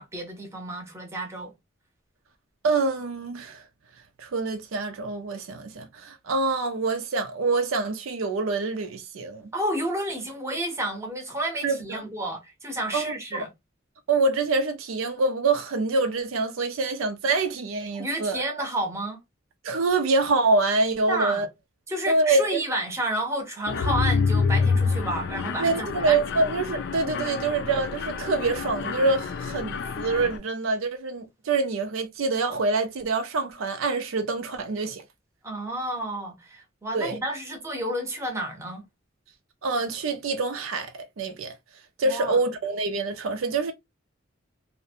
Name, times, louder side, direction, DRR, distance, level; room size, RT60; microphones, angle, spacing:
voice 1, 0.0-1.5 9.5-13.5 17.9-19.2 21.1-21.5 21.9-26.2 35.4-38.8 42.0-42.4, right 1 dB, 15° right, 0.7 m, -31 dB
voice 2, 2.6-3.6 4.2-9.5 11.6-12.1 12.9-13.4 14.1-18.4 19.6-21.5 22.1-22.6 25.6-35.0 36.9-37.2 39.6-41.5 42.0-43.7, right 3 dB, 80° right, 0.5 m, -26 dB
Mechanisms, 23.7-30.4, left 5 dB, 60° left, 0.3 m, -27 dB
2.5 x 2.1 x 2.7 m
head